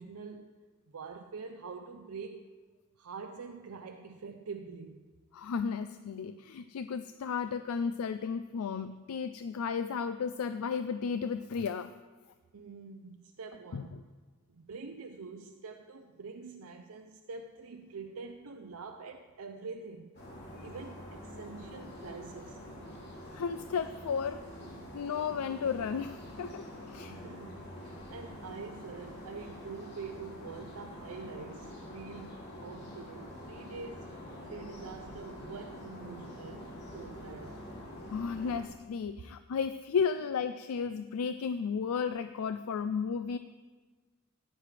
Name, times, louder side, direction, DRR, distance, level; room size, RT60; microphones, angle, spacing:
voice 1, 0.0-2.6 3.0-5.0 12.5-13.9 14.5-20.1 20.6-22.6 27.1-27.7 28.1-34.1 34.4-36.7 36.9-37.6, right 4 dB, 75° right, 5 dB, 0.6 m, -45 dB
voice 2, 5.3-11.9 13.7-13.9 23.3-24.4 24.9-27.2 38.1-43.4, left 6 dB, 80° left, 11 dB, 0.4 m, -34 dB
sound 1, 20.1-38.6, left 1 dB, 50° left, 2.7 m, -46 dB
14.5 x 9.8 x 3.3 m, 1.4 s
head